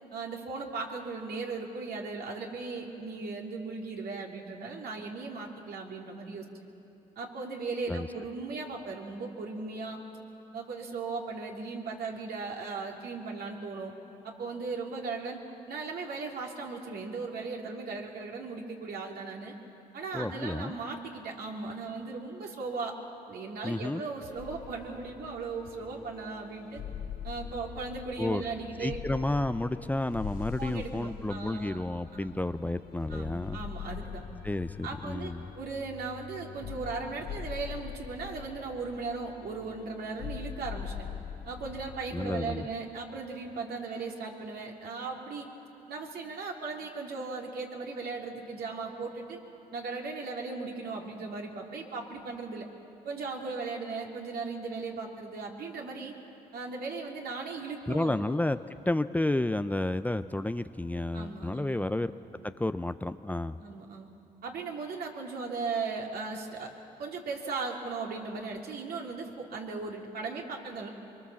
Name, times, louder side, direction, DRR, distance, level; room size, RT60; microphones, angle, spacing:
voice 1, 0.1-6.4 7.2-10.0 10.5-13.9 14.2-15.4 15.7-19.5 19.9-23.0 23.3-26.8 27.2-29.0 30.6-31.8 32.1-32.4 33.1-34.2 34.8-40.9 41.4-45.5 45.9-49.4 49.7-52.7 53.0-56.1 56.5-58.1 61.1-61.9 63.6-64.1 64.4-66.7 67.0-70.9, right 4 dB, 65° right, 0 dB, 3.2 m, -37 dB
voice 2, 20.1-20.8 23.6-24.0 28.2-28.4 28.8-33.6 34.4-35.5 42.1-42.7 57.9-58.6 58.9-62.1 62.4-63.6, left 2 dB, 10° left, 10 dB, 0.6 m, -31 dB
sound 1, 24.4-42.6, left 8 dB, 80° left, 3.9 m, -43 dB
23.5 x 23.5 x 7.2 m, 2.9 s
supercardioid pair, 60°, 17 cm